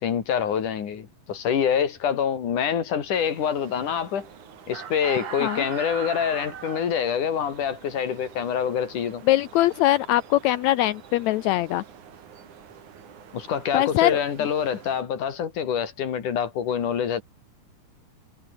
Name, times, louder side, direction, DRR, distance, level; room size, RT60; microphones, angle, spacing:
voice 1, 0.0-4.3 4.7-9.2 13.3-17.2, left 8 dB, 65° left, 3.9 m, -26 dB
sound 1, 3.1-15.0, right 8 dB, 65° right, 3.8 m, -43 dB
voice 2, 9.3-11.8 13.7-14.2, left 15 dB, 85° left, 1.6 m, -22 dB
omnidirectional pair, 3.9 m